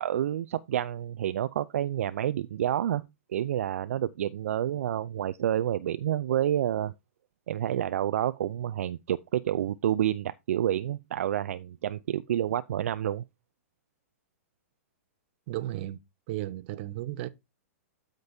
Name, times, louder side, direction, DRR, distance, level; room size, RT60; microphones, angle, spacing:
voice 1, 0.0-3.0 3.3-6.9 7.5-13.2, right 11 dB, 70° right, 0.4 m, -29 dB
voice 2, 15.5-16.0 16.3-17.3, right 14 dB, 50° right, 0.9 m, -34 dB
13.0 x 5.2 x 2.7 m
hypercardioid pair, 120°, 8 cm